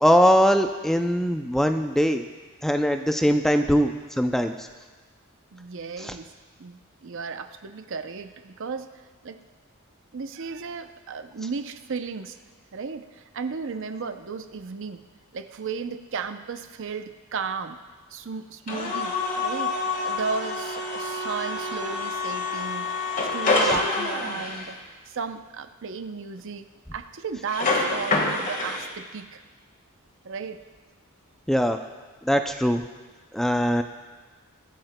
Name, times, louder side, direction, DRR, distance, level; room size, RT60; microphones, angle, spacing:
voice 1, 0.0-2.2 2.6-4.7 6.0-6.1 23.6-23.7 31.5-31.8 32.2-32.8 33.3-33.8, equal, ahead, 6 dB, 0.3 m, -21 dB
voice 2, 5.5-6.3 6.6-8.9 9.2-9.4 10.1-12.4 12.7-15.0 15.3-17.8 18.1-19.8 20.0-24.8 25.1-26.6 26.9-29.4 30.2-30.6 32.6-32.7, right 5 dB, 60° right, 9 dB, 0.6 m, -34 dB
sound 1, 18.7-24.7 27.5-28.9, left 3 dB, 40° left, 1.6 m, -27 dB
23.5 x 8.8 x 2.2 m, 1.3 s
head